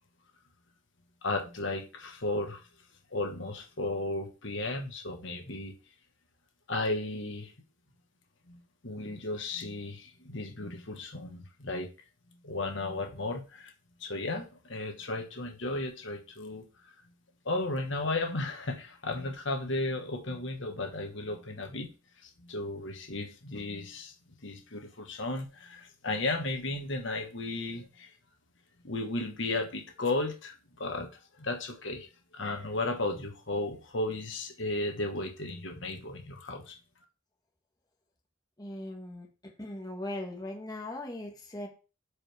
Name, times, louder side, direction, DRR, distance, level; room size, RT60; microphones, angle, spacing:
voice 1, 1.2-2.6 3.1-5.7 6.7-7.5 8.5-11.9 12.4-13.7 14.0-16.9 17.4-21.9 22.2-24.1 24.4-28.1 28.8-36.8, left 2 dB, 65° left, 3 dB, 1.6 m, -34 dB
voice 2, 38.6-41.7, left 1 dB, 20° left, 1 dB, 1.6 m, -39 dB
13.0 x 5.0 x 3.5 m, 0.33 s
head